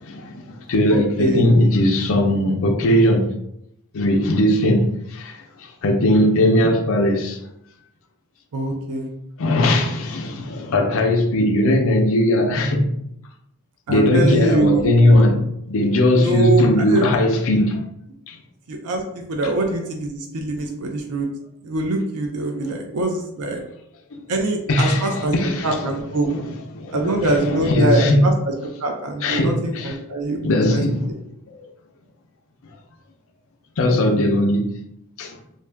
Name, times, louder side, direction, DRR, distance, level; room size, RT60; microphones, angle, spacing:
voice 1, 0.0-3.3 3.9-7.4 9.4-12.9 13.9-15.4 15.7-17.8 18.3-18.4 22.6-22.7 24.1-24.2 24.7-26.0 26.3-26.4 26.7-28.3 29.2-29.9 30.4-31.1 31.6-31.7 33.8-34.7 35.2-35.4, left 1 dB, 65° left, 0.5 m, -19 dB
voice 2, 0.9-1.5 8.5-9.1 13.9-15.2 16.2-17.1 18.7-21.3 21.6-23.6 24.3-25.3 25.6-26.3 26.9-28.5 28.8-30.4 30.7-31.2, right 2 dB, 80° right, 0.5 m, -23 dB
2.6 x 2.3 x 3.3 m
head